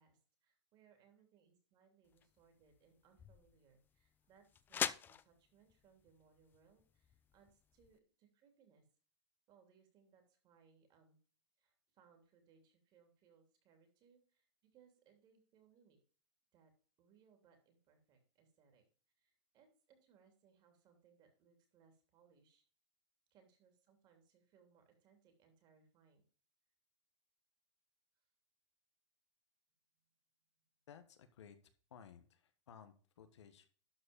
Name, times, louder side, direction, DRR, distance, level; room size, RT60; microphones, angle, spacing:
voice 1, 0.0-8.8 9.5-11.2 11.6-16.0 16.5-16.7 17.0-18.8 19.2-22.6 23.3-26.2, right 6 dB, 30° right, 5 dB, 3.0 m, -70 dB
sound 1, 2.0-8.0, left 8 dB, 15° left, 0.4 m, -46 dB
voice 2, 30.9-31.6 31.9-33.7, left 8 dB, 85° left, 8 dB, 1.4 m, -58 dB
12.0 x 4.6 x 5.2 m, 0.40 s
supercardioid pair, 145°, 14 cm